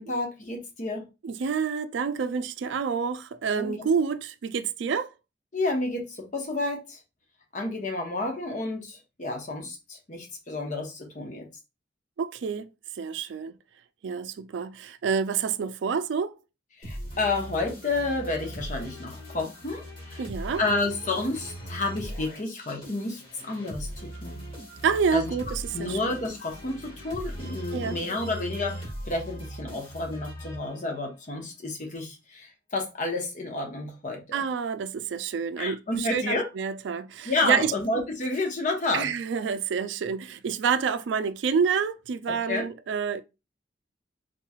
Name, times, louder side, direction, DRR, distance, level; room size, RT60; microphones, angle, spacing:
voice 1, 0.0-1.1 3.5-3.9 5.5-7.0 7.5-11.5 16.8-20.3 20.6-24.4 25.1-25.3 25.7-34.4 35.6-36.5 37.2-39.1 42.5-42.6, left 2 dB, 45° left, 0.9 m, -30 dB
voice 2, 1.2-5.1 12.2-12.7 13.0-13.5 14.0-16.4 20.2-20.6 24.8-26.0 27.7-28.0 34.3-37.7 38.9-43.2, right 6 dB, 85° right, 0.3 m, -28 dB
sound 1, 16.8-31.1, right 1 dB, 30° left, 1.4 m, -39 dB
3.8 x 3.0 x 2.3 m
head